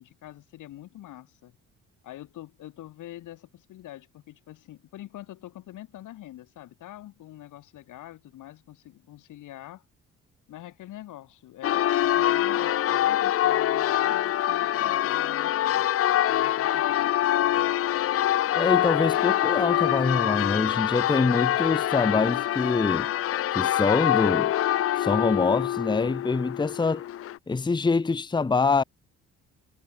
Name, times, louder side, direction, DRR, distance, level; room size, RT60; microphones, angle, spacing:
voice 1, 0.0-1.5 2.0-9.9 10.5-15.9 16.3-17.7, left 14 dB, 85° left, 6.3 m, -45 dB
Church bell, 11.6-27.4, left 12 dB, 50° left, 0.5 m, -25 dB
voice 2, 18.5-23.1 23.5-24.5 24.9-27.0 27.5-28.8, left 4 dB, 15° left, 0.8 m, -25 dB
cardioid pair, 90°, 30 cm